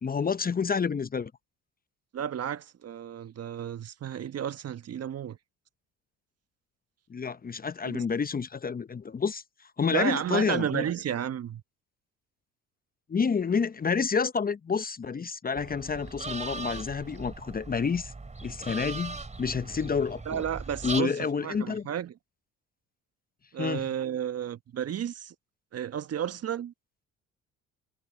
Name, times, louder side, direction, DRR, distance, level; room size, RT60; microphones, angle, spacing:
voice 1, 0.0-1.3 7.1-9.4 9.8-10.9 13.1-18.1 18.4-20.4 20.8-21.9 23.6-23.8, left 5 dB, 25° left, 0.9 m, -29 dB
voice 2, 2.1-5.4 7.8-8.1 9.9-11.6 20.2-22.1 23.5-25.3 25.7-26.7, right 9 dB, 45° right, 1.3 m, -32 dB
sound 1, 15.6-21.0, right 3 dB, 20° right, 3.1 m, -39 dB
hypercardioid pair, 60°, 33 cm